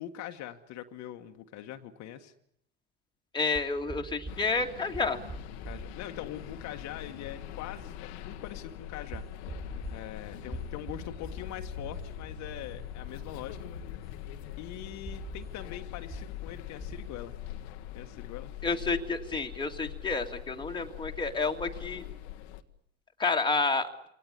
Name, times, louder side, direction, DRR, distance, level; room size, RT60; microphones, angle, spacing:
voice 1, 0.0-2.3 5.6-9.2 9.9-13.6 14.6-17.3 17.9-18.5, left 11 dB, 60° left, 5 dB, 1.5 m, -42 dB
voice 2, 3.3-5.2 18.6-22.0 23.2-23.9, left 3 dB, 15° left, 3 dB, 2.1 m, -30 dB
sound 1, 3.6-17.5, right 3 dB, 20° right, 4.8 m, -47 dB
sound 2, 4.3-22.6, left 11 dB, 80° left, 1.4 m, -43 dB
24.5 x 18.5 x 9.9 m, 0.75 s
supercardioid pair, 95°, 32 cm